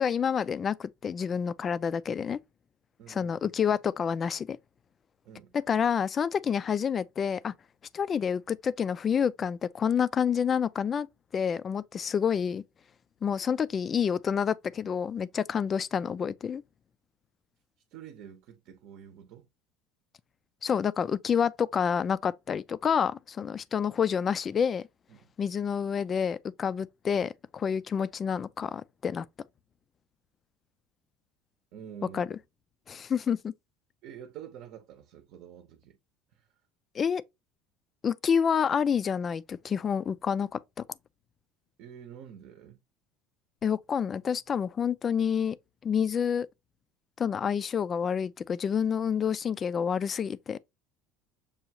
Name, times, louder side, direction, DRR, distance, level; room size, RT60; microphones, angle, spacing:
voice 1, 0.0-2.4 3.1-4.6 5.7-7.5 7.9-11.1 11.3-12.6 13.2-16.6 20.6-24.9 25.4-29.3 32.1-32.3 32.9-33.5 36.9-37.2 38.0-40.6 43.6-45.6 45.8-46.5 47.2-50.6, left 7 dB, 30° left, 0.3 m, -28 dB
voice 2, 3.0-3.4 5.2-5.6 17.9-19.5 25.1-25.3 31.7-32.2 34.0-36.0 36.3-36.5 41.8-42.8, right 9 dB, 60° right, 0.8 m, -47 dB
6.8 x 2.3 x 2.9 m
supercardioid pair, 115°, 0 cm